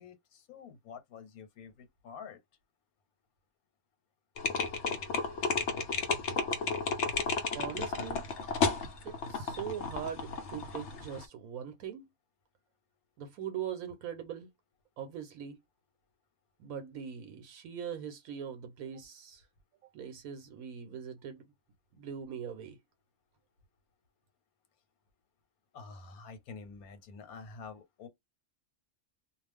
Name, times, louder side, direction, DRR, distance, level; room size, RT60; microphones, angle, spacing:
voice 1, 0.0-2.4 25.7-28.1, left 5 dB, 80° left, 1.2 m, -48 dB
sound 1, 4.4-11.2, left 4 dB, 60° left, 0.8 m, -33 dB
voice 2, 7.5-8.3 9.0-12.1 13.2-14.5 15.0-15.6 16.6-19.4 19.9-21.4 21.9-22.8, right 8 dB, 75° right, 1.1 m, -41 dB
2.4 x 2.3 x 3.4 m
omnidirectional pair, 1.5 m